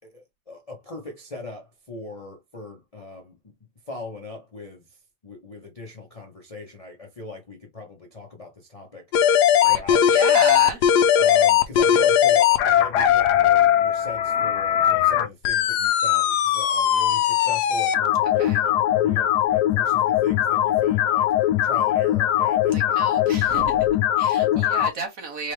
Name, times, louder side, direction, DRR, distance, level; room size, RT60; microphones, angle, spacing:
voice 1, 0.0-3.5 3.9-5.0 5.2-9.1 9.7-10.0 11.2-21.3 21.6-23.1 23.5-23.8 24.3-24.7, left 3 dB, 35° left, 0.5 m, -39 dB
sound 1, 9.1-24.9, left 10 dB, 75° left, 1.1 m, -20 dB
voice 2, 10.1-10.8 18.4-18.7 22.7-25.5, right 3 dB, 50° right, 1.5 m, -32 dB
3.8 x 3.3 x 3.2 m
omnidirectional pair, 2.0 m